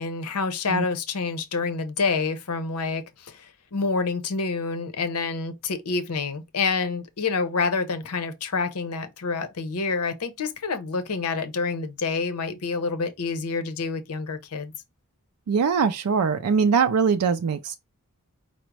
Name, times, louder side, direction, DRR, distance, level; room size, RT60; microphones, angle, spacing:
voice 1, 0.0-14.7, left 4 dB, 85° left, 0.7 m, -28 dB
voice 2, 15.5-17.8, right 5 dB, 75° right, 0.4 m, -22 dB
5.0 x 2.0 x 4.6 m
head